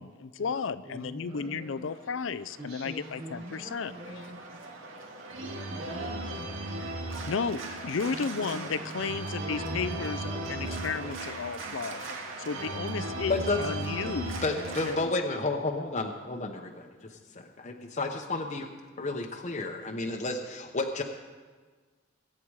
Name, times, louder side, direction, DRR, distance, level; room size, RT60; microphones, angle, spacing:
voice 1, 0.0-3.9 7.3-10.2 10.5-12.0 12.4-14.4 14.9-15.1, left 5 dB, 70° left, 15 dB, 0.5 m, -33 dB
voice 2, 0.8-1.9 2.6-4.6 5.7-6.9 8.1-11.1 13.6-15.0, equal, 35° right, -10 dB, 5.5 m, -44 dB
Organ, 1.8-15.0, right 2 dB, 80° right, 1.9 m, -37 dB
voice 3, 13.3-13.6 14.4-18.7 19.0-21.0, left 3 dB, 35° left, 2 dB, 0.9 m, -31 dB
22.0 x 8.6 x 4.8 m, 1.4 s
head